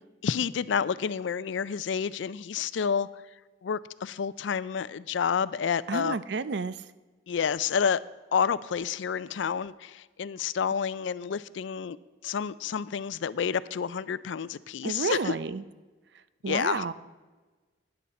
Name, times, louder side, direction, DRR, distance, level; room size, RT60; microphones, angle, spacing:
voice 1, 0.2-3.1 3.6-6.2 7.3-8.0 8.3-12.0 12.2-15.3 16.5-16.9, left 7 dB, 75° left, 17 dB, 0.4 m, -29 dB
voice 2, 5.9-6.8 14.8-15.6 16.4-16.9, right 4 dB, 60° right, 15 dB, 0.5 m, -30 dB
12.5 x 9.9 x 4.2 m, 1.3 s
head